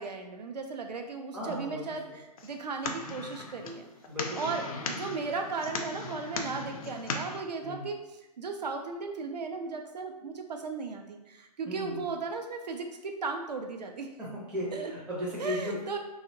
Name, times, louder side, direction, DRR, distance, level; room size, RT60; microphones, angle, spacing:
voice 1, 0.0-2.0 2.4-3.9 4.4-8.0 8.4-14.1 14.7-14.9 15.4-16.0, right 4 dB, 80° right, 4 dB, 0.4 m, -36 dB
voice 2, 1.3-2.2 4.1-4.9 7.6-7.8 11.7-12.1 14.2-16.0, equal, 5° right, -7 dB, 0.4 m, -37 dB
sound 1, 2.4-7.4, left 3 dB, 60° left, 0.4 m, -38 dB
2.8 x 2.0 x 2.6 m, 0.95 s
figure-of-eight pair, 130°, 21 cm